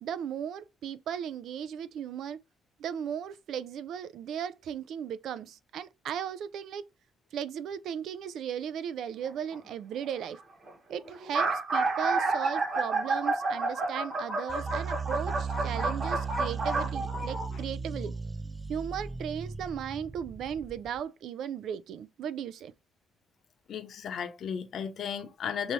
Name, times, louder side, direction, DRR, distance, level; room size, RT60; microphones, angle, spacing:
voice 1, 0.0-2.4 2.8-6.9 7.3-10.4 10.9-18.1 18.7-22.7, right 8 dB, 75° right, 0.4 m, -36 dB
sound 1, 9.2-9.5 10.4-10.5 10.7-10.8 11.1-17.5, right 3 dB, 45° right, 2.0 m, -30 dB
sound 2, 14.5-21.0, right 5 dB, 20° right, 0.5 m, -37 dB
voice 2, 23.7-25.7, left 7 dB, 60° left, 0.8 m, -35 dB
5.8 x 2.7 x 3.1 m
cardioid pair, 90°, 0 cm